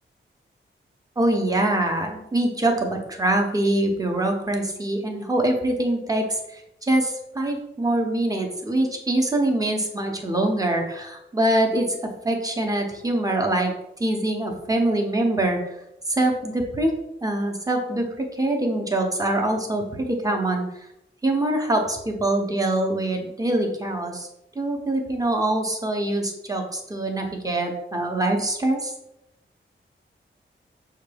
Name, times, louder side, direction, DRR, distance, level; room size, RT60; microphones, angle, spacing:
voice 1, 1.2-6.6 6.9-12.0 12.2-13.7 14.0-15.6 16.1-16.9 17.2-20.7 21.2-24.3 24.6-28.9, right 1 dB, 15° right, 2 dB, 0.7 m, -24 dB
6.4 x 2.2 x 3.3 m, 0.83 s
wide cardioid pair, 140°, 21 cm